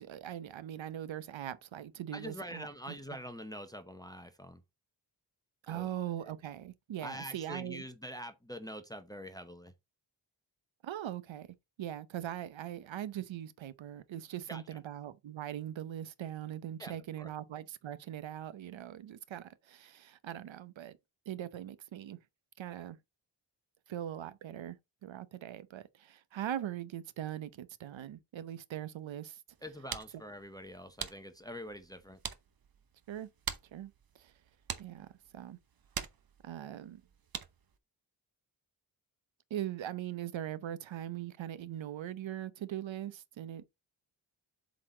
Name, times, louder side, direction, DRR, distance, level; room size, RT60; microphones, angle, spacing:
voice 1, 0.0-3.0 5.6-7.8 10.8-11.5 11.8-21.0 21.3-22.2 22.6-23.0 23.9-24.8 25.0-29.4 33.1-33.3 33.7-34.3 34.8-35.1 35.3-35.6 36.4-37.0 39.5-43.7, right 11 dB, 90° right, 0.7 m, -41 dB
voice 2, 2.1-4.6 5.7-5.9 7.0-9.7 14.5-14.6 16.8-17.3 29.6-32.2, equal, 10° left, 0.7 m, -45 dB
sound 1, 29.5-37.8, right 7 dB, 50° right, 0.9 m, -45 dB
7.7 x 4.1 x 3.8 m
wide cardioid pair, 130°, 45 cm